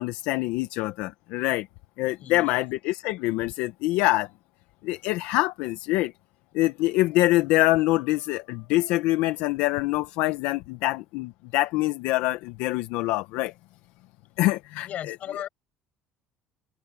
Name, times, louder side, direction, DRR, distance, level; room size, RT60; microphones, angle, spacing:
voice 1, 0.0-1.7 2.0-4.3 4.8-6.1 6.5-13.5 14.4-15.1, left 18 dB, 80° left, 1.2 m, -25 dB
voice 2, 2.2-2.7 14.8-15.5, left 11 dB, 55° left, 7.3 m, -36 dB
open air
supercardioid pair, 90°, 3 cm